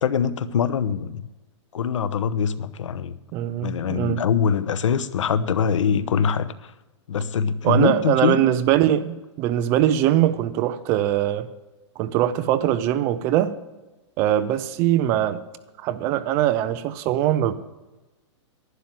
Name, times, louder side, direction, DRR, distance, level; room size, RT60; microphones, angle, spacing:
voice 1, 0.0-1.3 1.7-3.2 3.6-6.7 7.1-8.4, left 7 dB, 90° left, 0.9 m, -23 dB
voice 2, 3.3-4.2 7.6-11.5 12.0-13.5 14.2-15.4 15.8-17.5, right 12 dB, 15° right, 0.3 m, -22 dB
11.5 x 10.5 x 7.6 m
hypercardioid pair, 170°, 16 cm